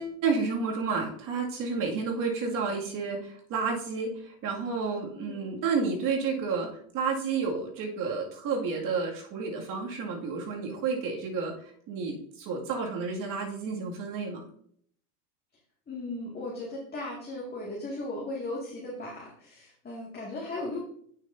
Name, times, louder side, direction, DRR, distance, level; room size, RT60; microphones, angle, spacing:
voice 1, 0.0-6.7 6.9-11.5 11.9-14.4, right 4 dB, 45° right, 0 dB, 2.3 m, -31 dB
voice 2, 15.9-20.8, left 2 dB, 20° left, -4 dB, 2.1 m, -37 dB
9.0 x 6.6 x 2.7 m, 0.63 s
supercardioid pair, 110°, 47 cm